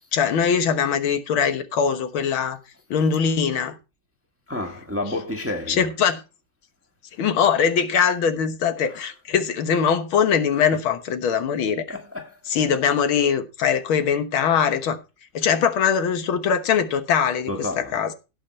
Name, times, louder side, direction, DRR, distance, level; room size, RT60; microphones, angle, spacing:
voice 1, 0.1-2.6 2.9-3.7 5.7-6.2 7.2-11.8 12.5-15.0 15.3-18.1, left 7 dB, 85° left, 2.1 m, -22 dB
voice 2, 4.5-6.2 8.1-8.2 8.8-9.1 10.5-10.8 11.9-12.4 17.5-18.1, left 2 dB, 10° right, 1.3 m, -32 dB
16.5 x 5.6 x 4.4 m
omnidirectional pair, 2.2 m